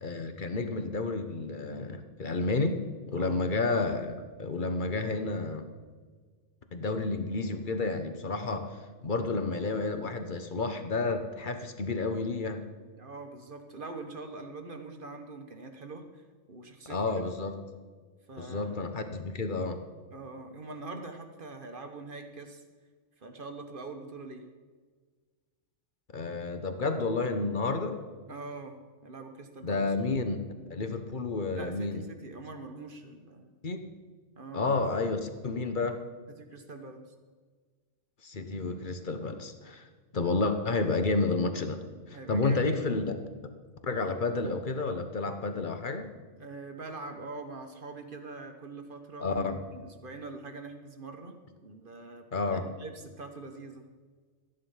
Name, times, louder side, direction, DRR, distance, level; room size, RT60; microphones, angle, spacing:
voice 1, 0.0-2.8 3.1-5.7 6.7-12.6 16.9-17.5 18.4-19.8 26.1-28.0 29.6-30.4 30.7-32.0 33.6-33.9 34.5-36.0 38.2-39.8 40.1-41.8 42.1-43.0 43.8-46.1 49.2-49.6 52.3-52.7, left 3 dB, 40° left, 7 dB, 1.1 m, -30 dB
voice 2, 2.3-2.8 3.1-3.4 12.9-17.3 18.3-19.1 20.1-22.6 23.2-24.5 28.3-29.9 31.5-33.5 34.4-34.7 36.3-37.1 42.1-43.1 46.4-51.4 51.6-52.3 52.5-53.9, right 3 dB, 40° right, 6 dB, 1.3 m, -44 dB
13.5 x 10.5 x 5.7 m, 1.5 s
omnidirectional pair, 1.4 m